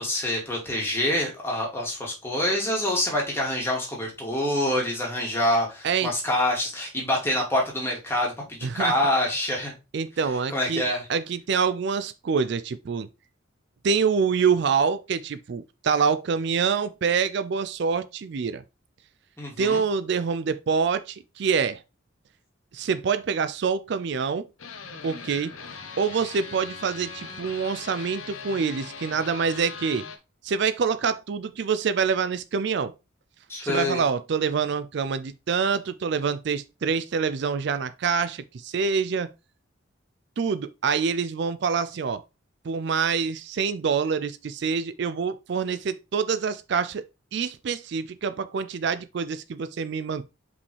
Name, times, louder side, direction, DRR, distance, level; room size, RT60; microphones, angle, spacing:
voice 1, 0.0-9.7 10.5-11.1 19.4-19.8 33.5-34.0, left 1 dB, 10° left, 2.4 m, -26 dB
voice 2, 8.6-8.9 9.9-10.8 11.1-13.1 13.8-18.6 19.6-21.8 22.7-24.5 25.0-25.5 26.0-30.1 30.4-32.9 33.6-39.3 40.4-42.2 42.6-47.0 47.3-50.2, right 5 dB, 55° right, 0.4 m, -26 dB
sound 1, 24.6-30.2, left 5 dB, 85° left, 1.1 m, -40 dB
5.4 x 5.3 x 3.2 m
head